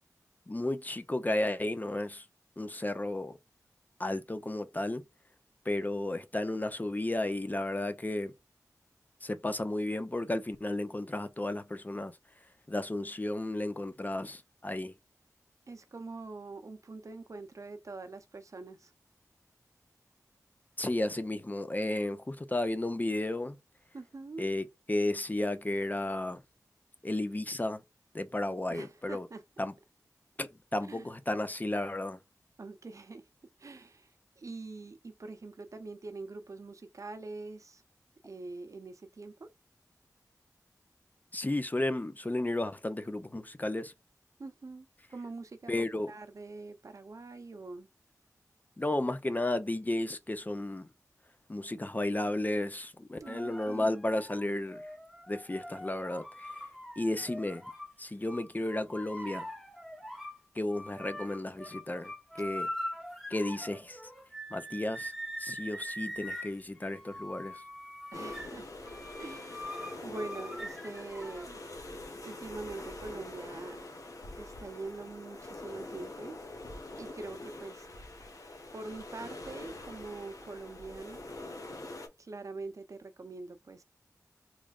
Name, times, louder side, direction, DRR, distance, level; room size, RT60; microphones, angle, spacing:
voice 1, 0.5-2.3 2.6-3.4 4.0-5.0 5.6-8.3 9.2-12.1 12.7-14.9 20.8-23.6 24.4-26.4 27.0-27.8 28.1-29.3 29.6-29.7 30.4-32.2 41.3-43.9 45.7-46.1 48.8-50.9 51.5-54.9 55.3-56.6 57.0-57.6 58.0-59.5 60.5-62.1 62.4-62.7 63.3-64.0 64.5-65.1 65.4-67.6, left 1 dB, 25° left, 0.6 m, -33 dB
voice 2, 15.7-18.9 23.9-24.5 28.7-29.4 30.9-31.1 32.6-33.3 33.6-37.8 38.2-39.5 44.4-47.9 53.2-54.0 68.1-68.7 69.2-69.8 70.0-71.6 72.2-73.8 74.4-76.3 77.0-77.9 78.7-81.2 82.2-83.8, right 3 dB, 60° right, 0.6 m, -44 dB
sound 1, 53.2-57.9 58.3-60.4 60.7-71.5, equal, 5° right, 1.5 m, -43 dB
sound 2, 68.1-82.1, left 2 dB, 65° left, 1.0 m, -44 dB
3.7 x 3.1 x 2.4 m
wide cardioid pair, 55°, 6 cm